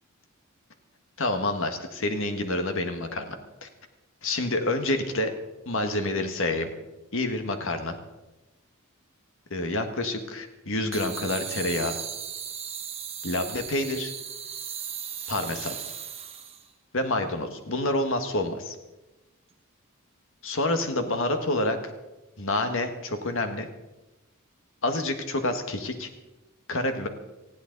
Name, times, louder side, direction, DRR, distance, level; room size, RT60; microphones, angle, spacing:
voice 1, 1.2-3.3 3.6-3.7 4.2-5.3 5.6-6.7 7.1-8.0 9.5-12.0 13.2-14.1 15.3-15.7 16.9-18.7 20.4-21.8 22.4-23.7 24.8-26.1 26.7-27.1, left 2 dB, 60° left, 6 dB, 1.7 m, -28 dB
sound 1, 10.9-16.7, right 8 dB, 30° right, 1.4 m, -36 dB
19.5 x 15.0 x 4.0 m, 1.0 s
head